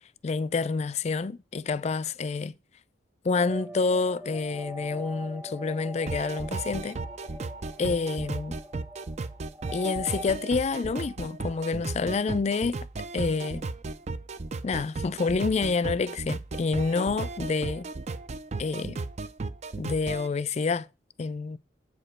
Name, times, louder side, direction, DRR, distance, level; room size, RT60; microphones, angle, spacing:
voice 1, 0.2-2.5 3.2-7.0 7.8-8.6 9.7-12.8 13.1-13.7 14.6-17.9 18.6-19.0 19.8-20.9 21.2-21.6, left 4 dB, 40° left, 0.4 m, -28 dB
sound 1, 3.3-10.3, equal, 15° right, 0.9 m, -42 dB
sound 2, 6.1-20.3, right 3 dB, 40° right, 0.5 m, -35 dB
8.7 x 5.0 x 4.3 m
head